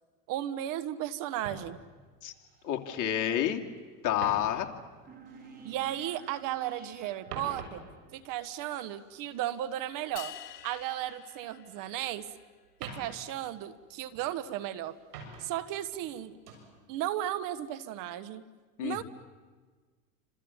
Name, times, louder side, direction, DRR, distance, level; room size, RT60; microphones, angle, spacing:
voice 1, 0.3-1.8 5.6-7.8 8.1-10.3 10.6-12.2 12.8-14.9 15.4-16.4 16.9-18.4 18.8-19.0, right 12 dB, 45° right, 13 dB, 1.4 m, -35 dB
sound 1, 1.4-3.4 3.7-6.6 6.9-11.1 11.4-12.3 12.6-14.5 14.8-15.7 16.0-16.7 17.2-17.5, right 4 dB, 75° right, 7.4 m, -48 dB
voice 2, 2.6-3.6 4.0-4.7 18.8-19.0, left 11 dB, 40° left, 4 dB, 2.7 m, -29 dB
sound 2, 5.1-8.4, right 6 dB, 20° right, 2.7 m, -51 dB
sound 3, 10.2-12.5, left 11 dB, 80° left, 1.8 m, -47 dB
30.0 x 26.5 x 7.4 m, 1.5 s
hypercardioid pair, 110°, 46 cm